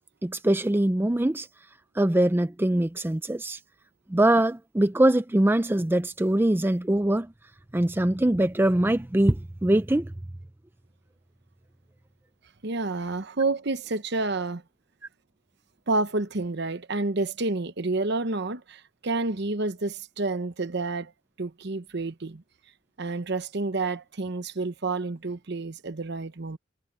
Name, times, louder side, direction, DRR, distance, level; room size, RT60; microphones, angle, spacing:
voice 1, 0.2-1.5 2.0-3.6 4.1-7.3 7.7-10.1, right 1 dB, 10° right, 0.4 m, -23 dB
voice 2, 12.6-14.6 15.9-21.1 21.4-22.4 23.0-26.6, right 3 dB, 60° right, 1.0 m, -29 dB
head